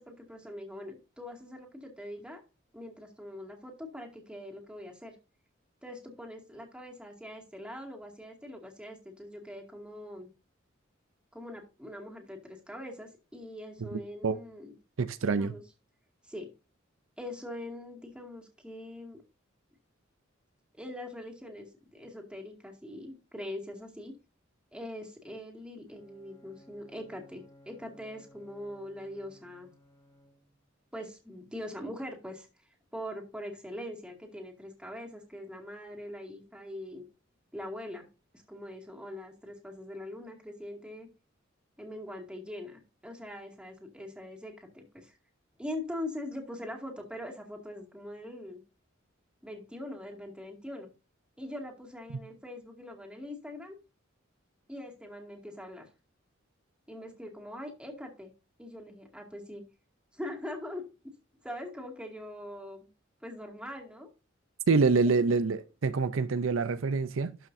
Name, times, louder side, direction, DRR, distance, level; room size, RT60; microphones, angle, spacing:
voice 1, 0.0-2.4 2.7-5.2 5.8-10.3 11.3-14.7 15.2-15.6 16.2-16.5 17.2-19.2 20.7-24.1 24.7-29.7 30.9-32.5 32.9-37.0 37.5-38.1 38.3-41.1 41.8-45.1 45.6-48.6 49.4-50.9 51.4-53.8 54.7-55.9 56.9-58.3 58.6-59.6 60.1-60.9 61.4-62.9 63.2-64.1, left 1 dB, 5° right, 2.2 m, -42 dB
voice 2, 13.9-14.4 15.0-15.5 64.7-67.4, right 4 dB, 85° right, 0.6 m, -26 dB
Bowed string instrument, 25.9-30.7, left 1 dB, 20° left, 1.5 m, -59 dB
12.5 x 5.7 x 2.7 m
head